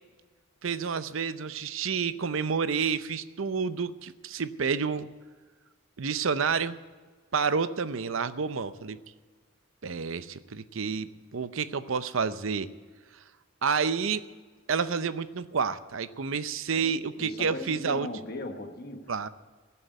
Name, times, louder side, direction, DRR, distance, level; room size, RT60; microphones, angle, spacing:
voice 1, 0.6-5.1 6.0-6.8 7.3-9.0 9.8-12.7 13.6-14.2 14.7-18.1 19.1-19.3, right 5 dB, 70° right, 14 dB, 0.6 m, -29 dB
voice 2, 17.2-19.3, left 1 dB, 50° left, 5 dB, 1.3 m, -39 dB
16.5 x 7.7 x 9.2 m, 1.5 s
head